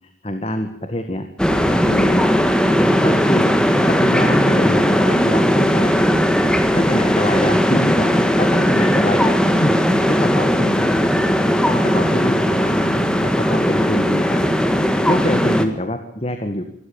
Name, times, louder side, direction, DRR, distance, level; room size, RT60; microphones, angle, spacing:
voice 1, 0.2-1.3 1.7-2.3 3.0-3.5 3.8-6.0 6.7-9.7 10.1-11.0 11.7-12.9 13.2-14.5 15.1-16.6, left 1 dB, 30° left, 7 dB, 1.7 m, -24 dB
sound 1, 1.4-15.6, equal, 5° left, 1.7 m, -17 dB
25.5 x 13.5 x 8.6 m, 0.77 s
head